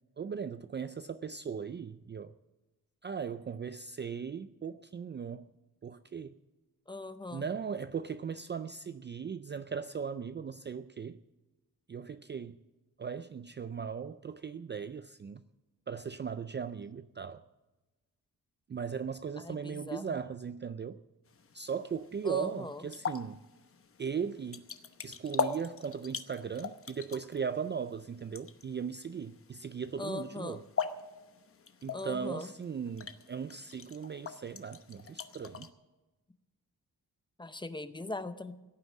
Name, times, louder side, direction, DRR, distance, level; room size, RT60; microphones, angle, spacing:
voice 1, 0.2-2.3 3.0-5.5 5.8-6.3 7.3-11.2 11.9-12.6 13.0-15.4 15.9-17.4 18.7-21.0 21.5-23.4 24.0-24.7 25.0-30.6 31.8-35.7, right 6 dB, 30° right, 0.4 m, -38 dB
voice 2, 6.9-7.4 19.4-20.2 22.2-22.8 30.0-30.6 31.9-32.5 37.4-38.5, left 2 dB, 15° left, 0.7 m, -40 dB
sound 1, 21.3-35.7, left 5 dB, 35° left, 0.9 m, -42 dB
17.0 x 9.6 x 7.2 m
wide cardioid pair, 165°, 36 cm